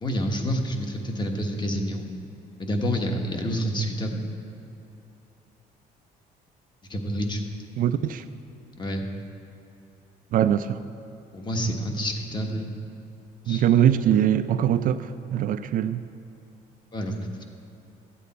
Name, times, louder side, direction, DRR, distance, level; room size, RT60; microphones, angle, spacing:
voice 1, 0.0-2.1 2.6-4.3 6.9-7.4 8.8-9.1 11.3-12.7 13.4-13.6 16.9-17.2, equal, 25° left, 3 dB, 1.3 m, -28 dB
voice 2, 7.8-8.2 10.3-10.8 13.5-16.0, right 10 dB, 55° right, 11 dB, 0.4 m, -22 dB
13.0 x 8.4 x 4.2 m, 3.0 s
cardioid pair, 110°, 17 cm